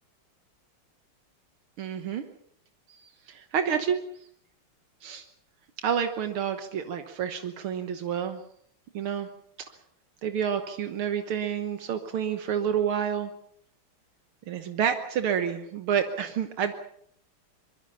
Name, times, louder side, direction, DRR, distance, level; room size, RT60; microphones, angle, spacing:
voice 1, 1.8-2.2 2.9-4.0 5.0-5.2 5.8-8.4 8.9-9.3 10.2-13.3 14.5-16.7, right 8 dB, 80° right, 7 dB, 2.1 m, -29 dB
25.0 x 22.5 x 5.7 m, 0.68 s
omnidirectional pair, 2.3 m